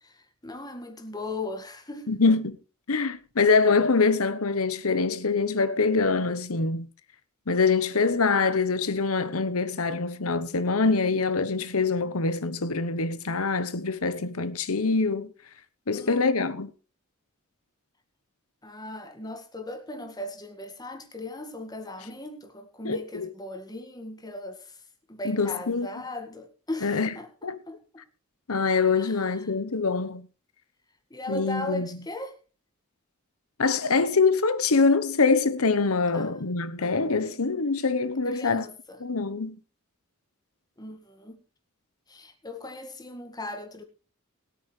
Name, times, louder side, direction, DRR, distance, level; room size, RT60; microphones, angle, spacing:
voice 1, 0.0-2.2 15.9-16.2 18.6-24.8 25.1-27.3 27.7-28.0 29.0-29.5 31.1-32.4 36.1-36.3 38.2-39.0 40.8-41.4 42.1-43.8, left 1 dB, 20° left, 1.8 m, -38 dB
voice 2, 2.1-2.6 2.9-6.9 7.5-15.3 15.9-16.7 22.8-23.3 25.2-25.9 26.8-27.1 27.4-27.6 28.5-30.3 31.3-31.9 33.6-38.6 39.0-39.6, left 4 dB, 80° left, 1.1 m, -24 dB
21.0 x 8.7 x 3.3 m
head